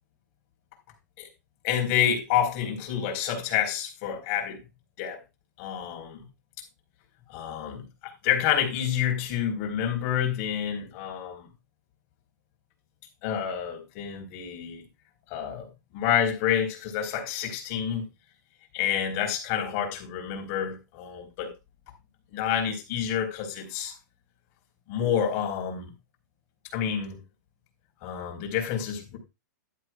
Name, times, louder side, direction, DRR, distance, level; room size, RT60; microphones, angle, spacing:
voice 1, 1.6-4.6 5.0-5.2 5.6-6.3 7.3-11.5 13.2-14.8 15.3-18.1 18.7-21.5 22.3-23.9 24.9-25.9 26.7-27.2 28.0-29.2, left 9 dB, 35° left, 4.3 m, -28 dB
12.0 x 11.0 x 2.4 m
hypercardioid pair, 155°, 10 cm